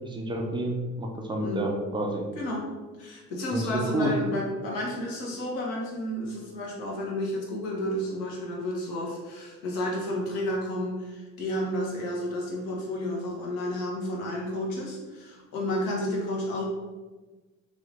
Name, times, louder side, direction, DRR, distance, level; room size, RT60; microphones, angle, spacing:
voice 1, 0.0-2.3 3.5-4.1, right 1 dB, 10° right, 1 dB, 0.4 m, -29 dB
voice 2, 2.3-2.6 3.0-16.6, left 1 dB, 65° left, -2 dB, 1.1 m, -31 dB
2.9 x 2.5 x 3.4 m, 1.3 s
hypercardioid pair, 60°, 48 cm